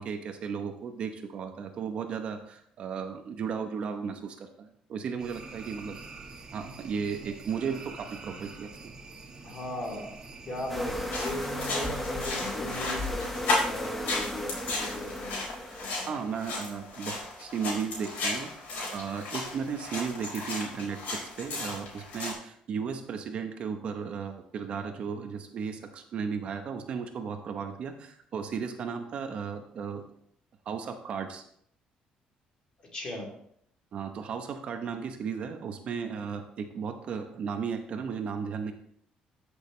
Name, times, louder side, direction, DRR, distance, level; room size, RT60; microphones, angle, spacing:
voice 1, 0.0-6.0 6.5-8.7 16.1-18.7 18.9-30.0 30.7-31.4 33.9-38.7, right 6 dB, 45° right, 6 dB, 0.8 m, -35 dB
sound 1, 5.2-11.4, right 3 dB, 25° right, 1.4 m, -46 dB
voice 2, 9.4-10.2 10.4-15.4 15.8-16.2 32.8-33.3, left 1 dB, 35° left, -1 dB, 2.9 m, -37 dB
sound 2, 10.7-16.0, left 1 dB, 5° left, 0.9 m, -35 dB
sound 3, 11.1-22.3, left 2 dB, 65° left, 4.4 m, -35 dB
13.5 x 6.4 x 3.2 m, 0.68 s
cardioid pair, 160°, 3 cm